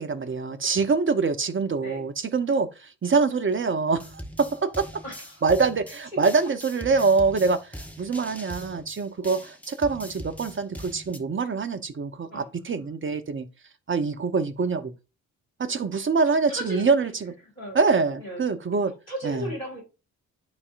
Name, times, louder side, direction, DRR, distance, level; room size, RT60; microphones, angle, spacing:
voice 1, 0.0-5.0 5.4-13.5 13.9-14.9 15.6-17.3 17.7-18.9 19.2-19.5, right 4 dB, 30° right, 1.0 m, -25 dB
sound 1, 4.0-11.2, equal, 5° left, 1.3 m, -41 dB
voice 2, 5.0-5.4 6.1-6.2 6.9-7.0 12.3-12.5 16.5-17.1 17.6-17.8 18.2-18.4 19.1-19.8, equal, 85° left, 2.4 m, -35 dB
12.0 x 4.2 x 2.6 m
figure-of-eight pair, 40°, 40 cm